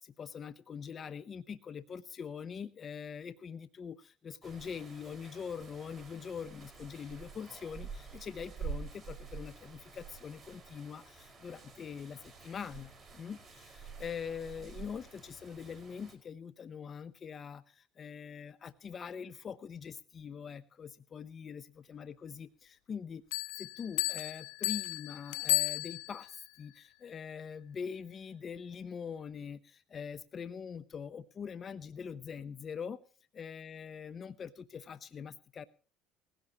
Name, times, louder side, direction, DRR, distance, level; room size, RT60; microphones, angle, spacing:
voice 1, 0.0-33.0 33.3-35.6, left 6 dB, 40° left, 14 dB, 0.8 m, -43 dB
sound 1, 4.4-16.1, right 5 dB, 25° right, 5.4 m, -48 dB
sound 2, 23.3-26.3, left 23 dB, 85° left, 0.7 m, -33 dB
20.5 x 16.5 x 3.0 m, 0.39 s
supercardioid pair, 85°, 0 cm